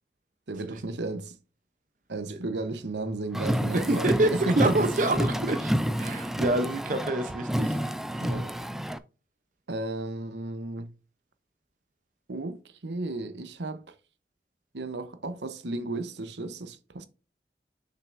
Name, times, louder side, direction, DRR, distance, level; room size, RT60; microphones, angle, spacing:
voice 1, 0.5-1.4 2.1-4.8 5.1-5.3 8.2-8.5 9.7-10.9 12.3-13.9 14.7-17.1, right 2 dB, 85° right, 0.9 m, -33 dB
Car, 3.3-9.0, equal, ahead, 0.3 m, -29 dB
voice 2, 3.7-5.7 6.0-7.8 8.1-8.2, right 2 dB, 45° right, 0.7 m, -27 dB
6.7 x 5.8 x 2.5 m
head